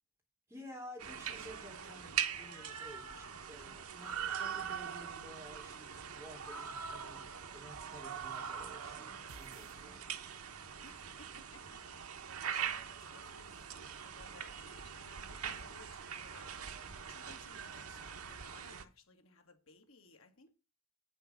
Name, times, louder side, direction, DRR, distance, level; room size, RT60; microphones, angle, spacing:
voice 1, 0.5-7.3 7.5-10.0, equal, 10° right, 3.5 m, -53 dB
sound 1, 1.0-18.8, right 7 dB, 90° right, 1.1 m, -42 dB
sound 2, 9.3-10.6, right 4 dB, 70° right, 0.8 m, -57 dB
voice 2, 10.8-20.5, left 3 dB, 70° left, 2.1 m, -61 dB
8.9 x 6.4 x 6.2 m
head